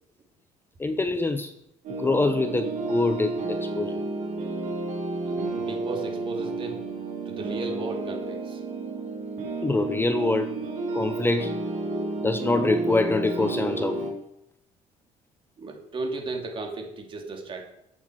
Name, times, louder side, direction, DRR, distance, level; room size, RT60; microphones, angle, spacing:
voice 1, 0.8-1.5 2.0-4.0 9.6-10.6 10.9-11.6 12.2-14.1, left 2 dB, 15° left, 10 dB, 0.7 m, -25 dB
sound 1, 1.8-14.1, right 2 dB, 70° right, 3.2 m, -31 dB
voice 2, 5.2-6.8 7.3-8.6 15.6-17.6, right 3 dB, 40° right, 2 dB, 2.7 m, -35 dB
12.0 x 8.0 x 4.7 m, 0.78 s
cardioid pair, 105°, 13 cm